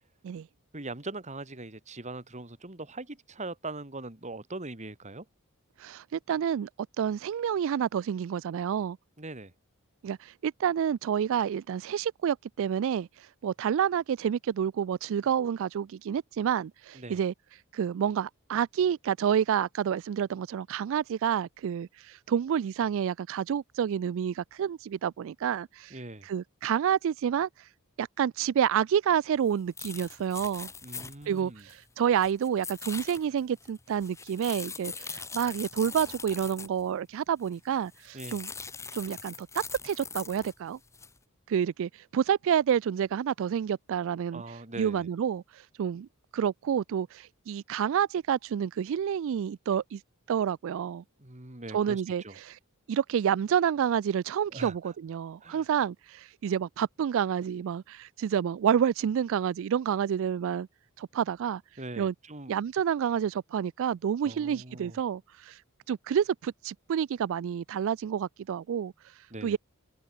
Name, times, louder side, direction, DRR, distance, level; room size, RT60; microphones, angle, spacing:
voice 1, 0.7-5.3 9.2-9.5 16.9-17.2 25.9-26.3 30.8-31.7 38.1-38.4 44.3-45.1 51.2-52.4 54.5-54.8 55.4-55.7 61.8-62.5 64.2-65.0 69.3-69.6, right 2 dB, 30° right, 2.4 m, -41 dB
voice 2, 5.8-6.7 7.0-9.0 10.0-17.3 17.7-27.7 28.0-30.7 31.3-38.5 38.9-40.8 41.5-46.1 46.3-50.0 50.3-51.0 51.7-52.6 52.9-60.7 61.0-61.6 62.0-62.1 62.5-65.6 65.9-69.6, right 8 dB, 60° right, 0.3 m, -29 dB
sound 1, 29.5-29.6 29.8-31.8 32.2-36.8 37.4-37.6 37.9-40.5 40.9-41.2, left 5 dB, 15° left, 1.1 m, -41 dB
head